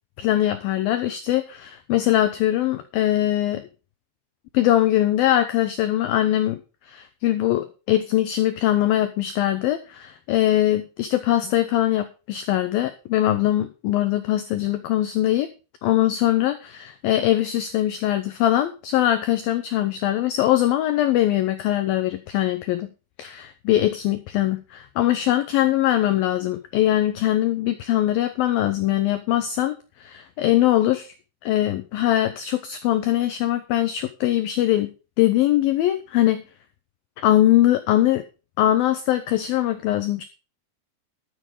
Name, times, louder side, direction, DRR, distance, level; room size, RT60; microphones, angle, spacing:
voice 1, 0.2-3.7 4.5-15.5 15.8-22.9 23.2-31.1 31.4-36.4 37.2-38.2 38.6-40.2, left 13 dB, 85° left, 10 dB, 2.0 m, -22 dB
12.5 x 7.7 x 4.9 m, 0.33 s
omnidirectional pair, 5.2 m